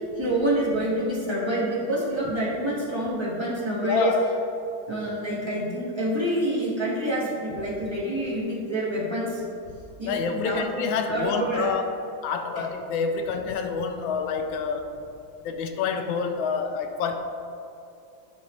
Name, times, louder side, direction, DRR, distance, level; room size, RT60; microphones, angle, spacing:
voice 1, 0.2-4.1 4.9-9.4 10.0-10.7 11.1-11.7, right 1 dB, 15° right, -7 dB, 1.3 m, -27 dB
voice 2, 3.8-4.3 10.1-14.9 15.4-17.2, left 5 dB, 85° left, 5 dB, 1.4 m, -27 dB
11.0 x 5.3 x 3.1 m, 2.6 s
omnidirectional pair, 2.1 m